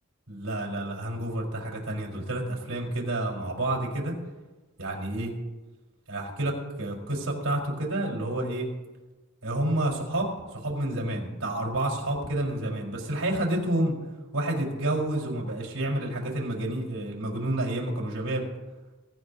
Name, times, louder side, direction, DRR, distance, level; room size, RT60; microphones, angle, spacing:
voice 1, 0.3-4.1 4.8-5.3 6.1-8.7 9.4-10.3 10.6-14.0 14.3-18.5, right 1 dB, 80° right, -3 dB, 4.6 m, -29 dB
24.0 x 14.0 x 2.8 m, 1.2 s
head